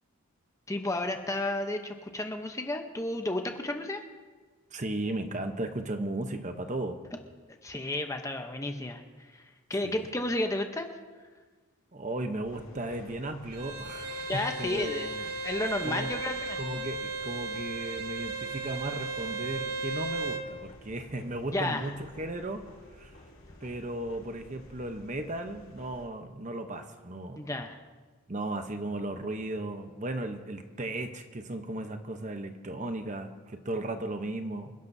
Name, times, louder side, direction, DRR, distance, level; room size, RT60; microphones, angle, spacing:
voice 1, 0.7-4.0 7.6-9.4 9.7-10.9 14.3-15.1 15.4-16.6 21.5-21.9 27.4-27.8, left 1 dB, 15° left, 5 dB, 0.7 m, -32 dB
voice 2, 4.7-7.0 9.8-10.0 11.9-15.2 15.8-16.1 16.6-22.7 23.0-23.2 23.6-27.5 28.3-34.7, right 2 dB, 35° right, 7 dB, 0.8 m, -36 dB
sound 1, 12.4-26.1, left 1 dB, 65° left, 2.5 m, -53 dB
Bowed string instrument, 13.5-20.5, right 3 dB, 85° right, 1.3 m, -35 dB
27.0 x 11.5 x 2.7 m, 1.4 s
head